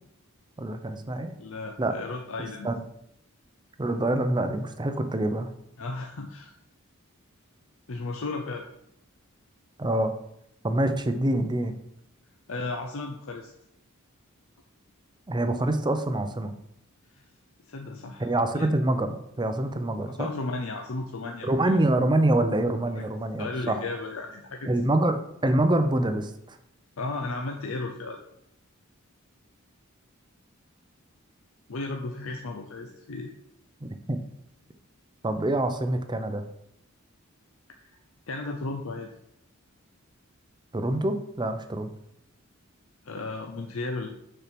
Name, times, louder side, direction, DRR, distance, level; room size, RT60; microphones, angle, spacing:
voice 1, 0.6-1.3 1.8-1.9 2.6-2.8 3.8-5.5 9.8-10.1 10.6-11.7 15.3-16.5 18.2-20.3 21.4-23.8 24.7-26.3 33.8-34.2 35.2-36.4 40.7-41.9, right 1 dB, 20° right, 8 dB, 0.6 m, -25 dB
voice 2, 1.4-2.7 5.8-6.5 7.9-8.6 12.5-13.5 17.1-17.2 17.7-18.7 20.1-21.8 23.0-23.1 23.4-24.7 27.0-28.2 31.7-33.3 37.8-38.0 38.3-39.1 43.0-44.1, left 3 dB, 70° left, 3 dB, 0.7 m, -34 dB
6.7 x 4.4 x 6.0 m, 0.77 s
head